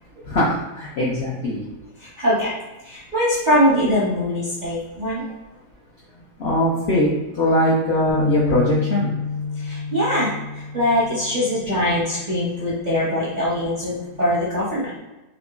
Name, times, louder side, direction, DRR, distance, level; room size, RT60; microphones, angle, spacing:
voice 1, 0.3-1.6 6.4-9.1, left 1 dB, 65° left, -6 dB, 0.6 m, -21 dB
voice 2, 2.0-2.6 2.8-5.3 9.6-14.9, equal, 50° right, -8 dB, 0.5 m, -22 dB
sound 1, 8.1-12.4 12.8-13.1 13.9-14.3, left 4 dB, 20° left, 0.5 m, -29 dB
3.7 x 2.8 x 2.3 m, 1.0 s
omnidirectional pair, 1.7 m